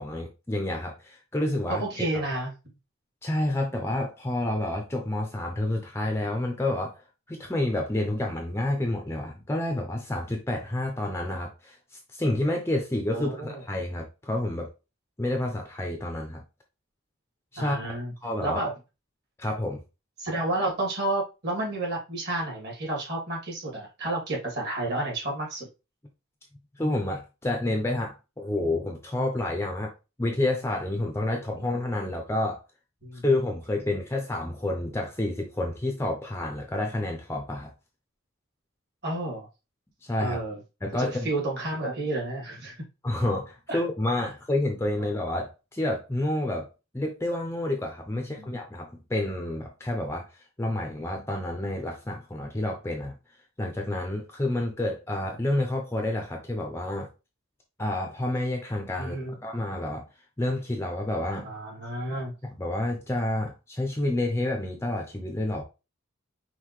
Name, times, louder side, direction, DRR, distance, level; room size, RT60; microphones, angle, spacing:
voice 1, 0.0-2.2 3.2-7.0 7.3-14.7 15.2-16.4 17.5-17.8 18.2-18.6 19.4-19.8 26.8-29.9 30.2-32.6 33.2-37.7 40.0-40.4 40.8-41.3 43.0-46.7 46.9-53.1 53.6-57.1 57.8-60.1 60.4-61.5 62.6-65.6, left 1 dB, 10° left, 0.6 m, -29 dB
voice 2, 1.8-2.5 13.1-13.6 17.6-18.1 18.4-18.7 20.2-25.7 33.0-33.2 39.0-39.5 40.2-40.6 41.0-42.8 43.7-43.8 44.2-44.3 48.1-48.5 59.0-59.3 61.3-62.3, right 2 dB, 50° right, 2.4 m, -31 dB
5.6 x 2.7 x 3.1 m
head